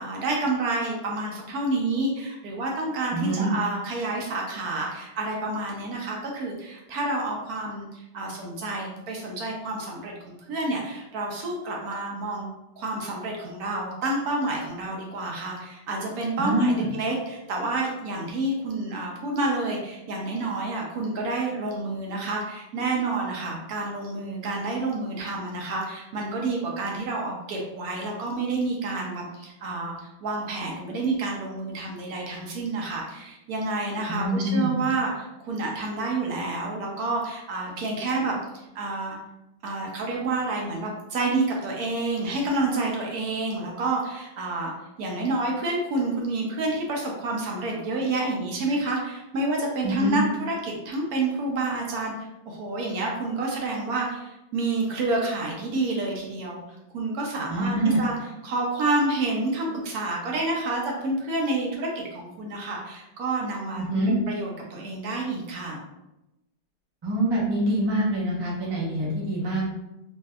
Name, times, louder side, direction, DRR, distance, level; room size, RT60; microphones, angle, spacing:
voice 1, 0.0-12.5 12.8-39.2 39.6-44.7 45.0-56.6 56.9-58.1 58.4-65.8, right 2 dB, 70° right, -1 dB, 1.0 m, -29 dB
voice 2, 3.1-3.5 16.4-16.9 34.1-34.8 49.8-50.2 57.5-58.0 63.7-64.1 67.0-69.6, right 1 dB, 40° right, -6 dB, 0.3 m, -25 dB
3.2 x 2.6 x 2.2 m, 0.93 s
omnidirectional pair, 1.9 m